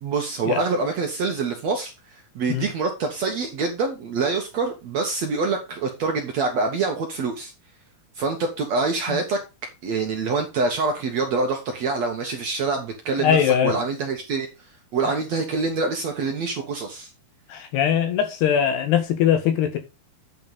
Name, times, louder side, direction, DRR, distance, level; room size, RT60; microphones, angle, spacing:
voice 1, 0.0-7.5 8.2-9.4 9.8-14.5 14.9-17.1, right 4 dB, 60° right, 1.8 m, -25 dB
voice 2, 13.2-13.8 17.5-19.8, left 9 dB, 85° left, 3.6 m, -21 dB
9.5 x 4.6 x 5.4 m
omnidirectional pair, 4.6 m